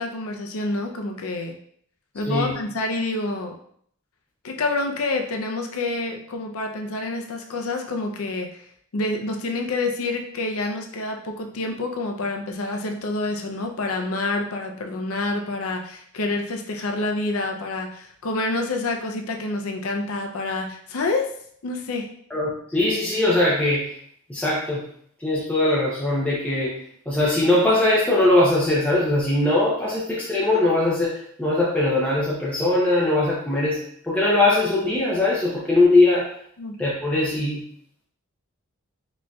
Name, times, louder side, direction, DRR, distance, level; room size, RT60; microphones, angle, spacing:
voice 1, 0.0-1.6 2.1-3.5 4.4-8.6 8.9-21.3 21.6-22.1 36.6-36.8, left 2 dB, 70° left, 3 dB, 0.5 m, -27 dB
voice 2, 22.3-23.9 24.3-24.9 25.2-26.7 27.1-33.8 34.0-36.3 36.8-37.6, left 2 dB, 5° left, -7 dB, 0.6 m, -21 dB
5.1 x 2.7 x 2.3 m, 0.64 s
head